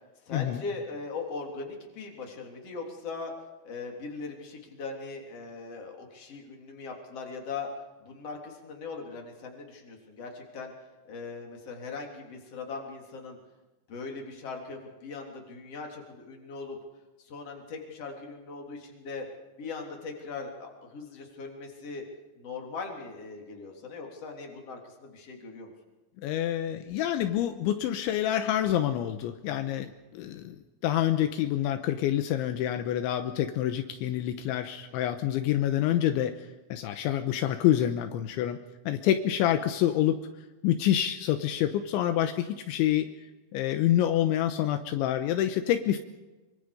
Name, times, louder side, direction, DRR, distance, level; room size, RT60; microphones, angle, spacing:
voice 1, 0.3-3.3 3.6-7.7 8.0-10.7 11.1-13.4 13.9-16.8 17.2-19.3 19.6-22.0 22.4-25.7 34.9-35.2, left 4 dB, 35° left, 1 dB, 3.9 m, -40 dB
voice 2, 26.2-30.6 30.8-38.6 38.9-40.2 40.6-43.1 43.5-46.0, left 11 dB, 80° left, 8 dB, 3.2 m, -27 dB
26.0 x 24.5 x 5.1 m, 1.1 s
omnidirectional pair, 5.6 m